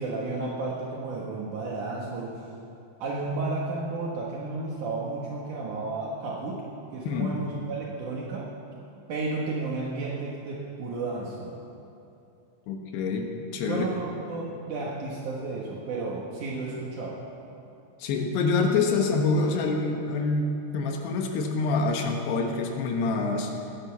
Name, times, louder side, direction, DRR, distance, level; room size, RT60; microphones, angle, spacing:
voice 1, 0.0-2.4 3.0-6.7 6.9-8.5 9.1-11.6 13.7-17.2, right 3 dB, 85° right, -3 dB, 1.7 m, -32 dB
voice 2, 7.1-7.4 12.7-13.8 18.0-23.5, left 4 dB, 70° left, 2 dB, 2.8 m, -26 dB
17.5 x 10.5 x 7.2 m, 2.7 s
omnidirectional pair, 5.8 m